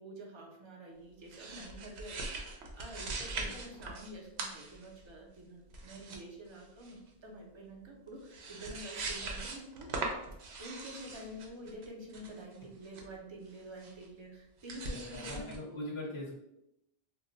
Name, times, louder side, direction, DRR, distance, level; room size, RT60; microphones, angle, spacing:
voice 1, 0.0-10.1 10.6-15.8, right 1 dB, 35° right, 0 dB, 0.5 m, -48 dB
sound 1, 1.3-4.1 4.4-5.1 5.7-6.2 6.5-7.0 8.0-8.1 8.3-13.1 13.8-14.1 14.6-15.6, right 3 dB, 80° right, 0.9 m, -41 dB
voice 2, 14.8-16.3, left 1 dB, 35° left, -4 dB, 0.6 m, -42 dB
2.2 x 2.1 x 3.8 m, 0.83 s
omnidirectional pair, 1.1 m